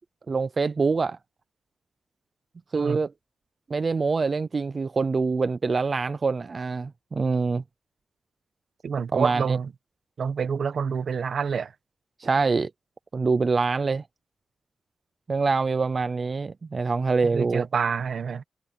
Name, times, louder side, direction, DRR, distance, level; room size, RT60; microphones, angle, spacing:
voice 1, 0.3-1.2 2.7-3.1 3.7-7.6 9.1-9.4 12.2-12.7 13.1-14.0 15.3-17.7, right 4 dB, 40° right, 0.5 m, -25 dB
voice 2, 8.8-9.7 10.2-11.7 17.2-18.4, right 6 dB, 70° right, 1.2 m, -27 dB
wide cardioid pair, 145°, 0 cm